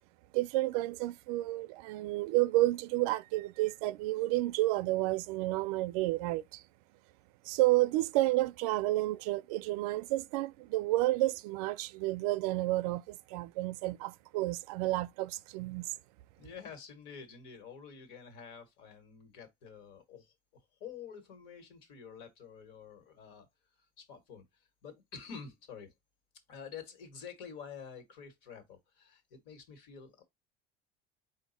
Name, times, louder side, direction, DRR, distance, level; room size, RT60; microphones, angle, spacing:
voice 1, 0.3-6.6 7.4-15.9, right 18 dB, 80° right, 0.4 m, -31 dB
voice 2, 16.4-23.5 24.0-25.9 26.5-30.2, left 6 dB, 65° left, 1.5 m, -49 dB
4.9 x 2.5 x 4.0 m
cardioid pair, 175°, 19 cm